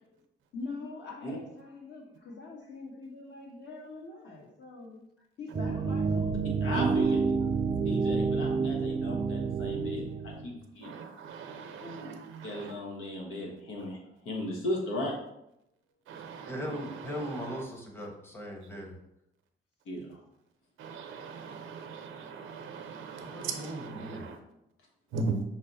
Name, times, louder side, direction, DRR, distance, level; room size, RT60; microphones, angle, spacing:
voice 1, 0.5-6.3 6.6-7.7 11.7-12.4, left 3 dB, 60° left, 1.5 m, -44 dB
sound 1, 5.5-10.5, right 4 dB, 30° right, 0.4 m, -28 dB
voice 2, 6.6-7.2 7.8-10.9 12.4-14.0 14.2-15.1 19.9-20.2, left 1 dB, 85° left, 1.1 m, -36 dB
voice 3, 10.8-12.8 16.1-17.6 20.8-24.4 25.1-25.4, right 4 dB, 85° right, 0.7 m, -39 dB
voice 4, 16.5-19.0 23.2-24.3, equal, 10° left, 0.9 m, -39 dB
5.8 x 2.1 x 3.9 m
cardioid pair, 90°, 20 cm